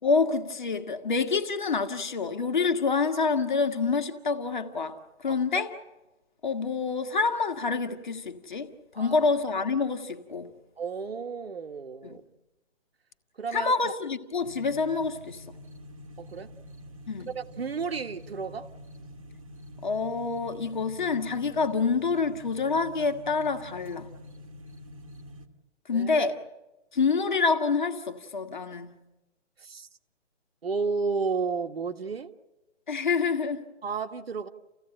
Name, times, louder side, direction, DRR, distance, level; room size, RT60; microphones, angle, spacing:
voice 1, 0.0-5.7 6.4-8.7 8.9-10.5 12.0-12.2 13.5-15.4 17.1-17.3 19.8-24.1 25.9-26.3 26.9-28.9 32.9-33.7, left 4 dB, 40° left, 1.7 m, -27 dB
voice 2, 5.3-5.6 9.0-9.2 10.8-12.2 13.4-13.9 16.2-16.5 17.3-18.7 25.9-26.3 29.6-29.9 30.6-32.3 33.8-34.5, right 5 dB, 55° right, 1.5 m, -32 dB
sound 1, 14.4-25.5, equal, 25° right, 1.5 m, -46 dB
30.0 x 15.5 x 9.0 m
hypercardioid pair, 175°, 37 cm